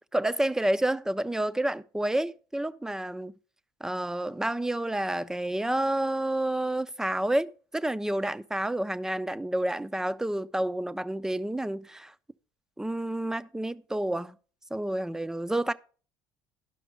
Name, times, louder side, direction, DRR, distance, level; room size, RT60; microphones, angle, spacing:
voice 1, 0.1-3.3 3.8-12.1 12.8-14.4 14.7-15.7, right 1 dB, 5° right, 0.5 m, -29 dB
12.0 x 5.9 x 4.9 m
hypercardioid pair, 65°, 10 cm